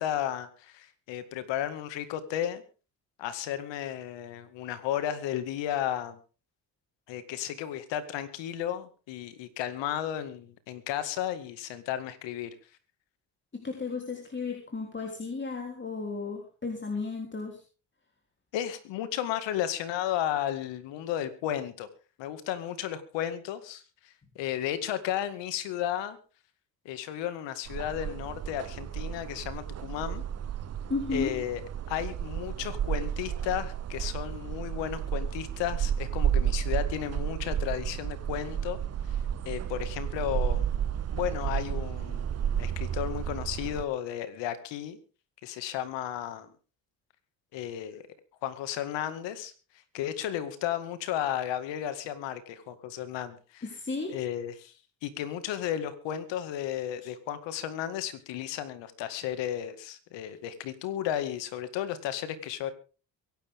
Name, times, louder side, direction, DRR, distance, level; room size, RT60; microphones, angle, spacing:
voice 1, 0.0-2.6 3.2-6.2 7.1-12.5 18.5-21.9 22.2-26.2 26.9-30.2 31.1-31.6 31.9-38.8 39.5-40.7 41.1-42.3 42.6-45.0 45.4-46.5 47.5-48.0 48.4-49.5 49.9-53.7 54.1-54.7 55.0-62.7, left 11 dB, 85° left, 12 dB, 2.2 m, -33 dB
voice 2, 13.5-17.6 30.9-31.3 53.6-54.1, left 4 dB, 25° left, 2 dB, 3.6 m, -34 dB
sound 1, 27.7-43.8, right 9 dB, 35° right, 0.7 m, -32 dB
23.5 x 11.5 x 3.7 m, 0.35 s
cardioid pair, 80°, 43 cm